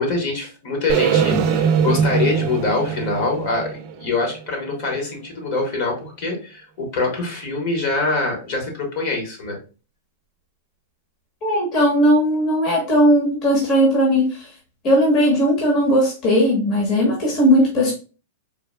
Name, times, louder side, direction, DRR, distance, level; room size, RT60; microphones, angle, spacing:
voice 1, 0.0-9.6, left 3 dB, 55° left, 2 dB, 1.3 m, -24 dB
sound 1, 0.9-4.9, right 7 dB, 45° right, 0.5 m, -22 dB
voice 2, 11.4-14.3 14.8-17.9, equal, 40° left, -2 dB, 1.1 m, -17 dB
3.7 x 2.3 x 2.2 m, 0.34 s
hypercardioid pair, 125°, 0 cm